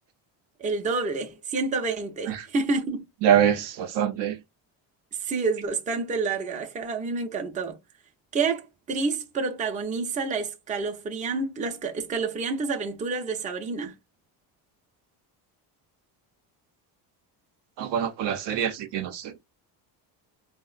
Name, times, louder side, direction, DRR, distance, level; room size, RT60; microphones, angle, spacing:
voice 1, 0.6-3.0 5.2-7.8 8.3-13.9, right 4 dB, 15° right, 0.5 m, -28 dB
voice 2, 3.2-4.4 17.8-19.4, right 9 dB, 65° right, 0.5 m, -25 dB
3.6 x 2.1 x 2.4 m
cardioid pair, 105°, 46 cm